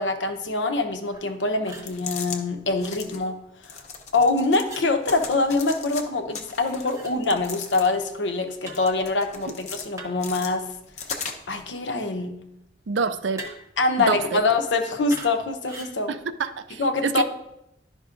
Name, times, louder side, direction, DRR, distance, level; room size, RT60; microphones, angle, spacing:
voice 1, 0.0-3.8 4.1-10.7 11.5-12.4 13.8-16.1 16.8-17.2, left 3 dB, 90° left, 6 dB, 0.8 m, -24 dB
sound 1, 1.1-1.3 1.6-1.9 4.6-4.9 6.8-7.2 8.6-8.9 10.0-10.3 13.4-13.8 15.1-15.4 15.6-16.0, right 2 dB, 15° right, 0.8 m, -40 dB
sound 2, 1.7-2.4 2.8-3.2 3.6-4.7 5.0-6.0 6.3-8.1 8.5-9.9 10.2-11.6, left 5 dB, 40° left, 0.7 m, -37 dB
voice 2, 12.9-13.4 14.1-14.4 16.1-17.2, right 5 dB, 85° right, 11 dB, 0.5 m, -27 dB
11.0 x 5.3 x 2.5 m, 0.82 s
head